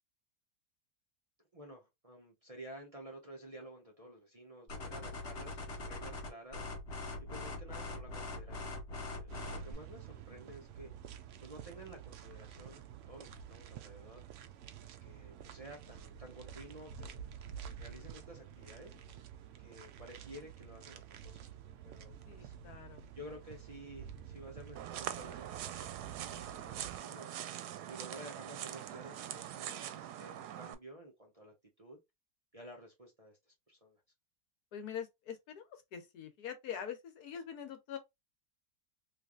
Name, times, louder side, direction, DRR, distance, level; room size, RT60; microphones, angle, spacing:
voice 1, 1.5-6.6 7.2-10.9 11.4-14.2 14.8-17.2 17.6-18.9 19.6-21.4 21.8-22.5 23.1-27.3 27.9-32.0 32.5-34.0, right 1 dB, 30° right, 0.8 m, -52 dB
sound 1, 4.7-9.7, left 2 dB, 45° left, 1.2 m, -42 dB
sound 2, 9.3-27.0, right 9 dB, 65° right, 0.8 m, -50 dB
voice 2, 22.3-23.0 34.7-38.0, left 8 dB, 75° left, 1.4 m, -44 dB
sound 3, 24.8-30.8, right 11 dB, 90° right, 1.1 m, -43 dB
3.3 x 3.1 x 2.4 m
omnidirectional pair, 1.7 m